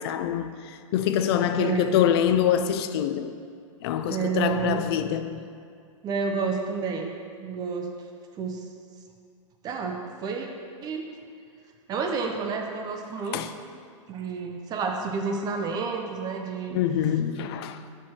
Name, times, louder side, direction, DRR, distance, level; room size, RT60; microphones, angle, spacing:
voice 1, 0.0-3.3 3.8-5.4 13.3-13.5 16.7-17.8, left 9 dB, 50° left, 0.4 m, -25 dB
voice 2, 1.5-2.0 4.1-4.8 6.0-7.9 8.4-8.6 9.6-10.5 10.8-11.1 11.9-13.4 14.1-16.8, right 5 dB, 25° right, 0.5 m, -30 dB
6.0 x 4.6 x 4.3 m
hypercardioid pair, 130°, 17 cm